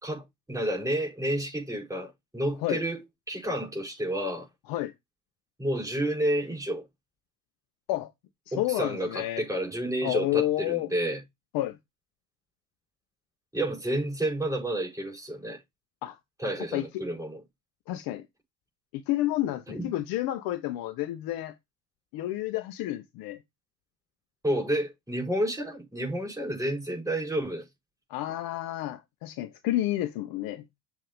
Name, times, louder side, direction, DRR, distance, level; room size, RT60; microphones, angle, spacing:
voice 1, 0.0-4.5 5.6-6.9 8.5-11.2 13.5-15.6 16.4-17.4 19.7-19.9 24.4-27.6, right 1 dB, 5° right, 4.6 m, -30 dB
voice 2, 8.5-9.4 10.0-10.9 11.5-11.8 16.0-16.2 16.7-17.0 17.9-18.2 18.9-21.5 22.1-23.4 28.1-30.8, left 15 dB, 50° left, 0.7 m, -30 dB
7.5 x 2.8 x 5.0 m
hypercardioid pair, 65°, 46 cm